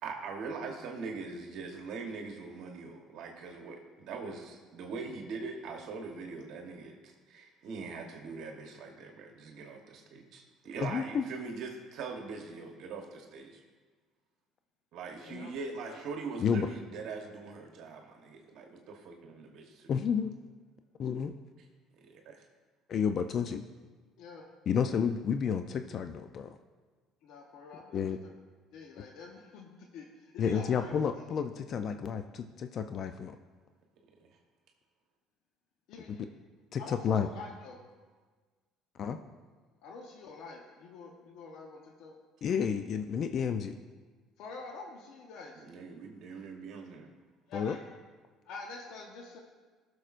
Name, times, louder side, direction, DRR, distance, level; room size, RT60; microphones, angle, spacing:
voice 1, 0.0-13.6 14.9-19.9 22.0-22.4 34.2-34.3 45.5-47.1, right 4 dB, 65° right, 3 dB, 1.1 m, -42 dB
voice 2, 10.8-11.2 15.3-15.5 16.4-16.7 19.9-20.3 21.0-21.3 22.9-23.6 24.7-26.6 27.9-28.2 29.0-29.1 30.4-33.3 36.1-36.2 36.7-37.3 39.0-39.2 42.4-43.8 47.5-47.8, left 7 dB, 50° left, 8 dB, 0.4 m, -31 dB
voice 3, 15.2-15.5 15.8-16.3 16.6-16.7 24.2-24.5 27.2-28.0 28.7-30.9 35.9-36.3 36.8-37.8 39.8-42.2 44.4-45.6 47.5-47.8 48.5-49.4, left 4 dB, 70° left, 1 dB, 0.9 m, -47 dB
17.5 x 6.3 x 2.5 m, 1.4 s
cardioid pair, 100°, 0 cm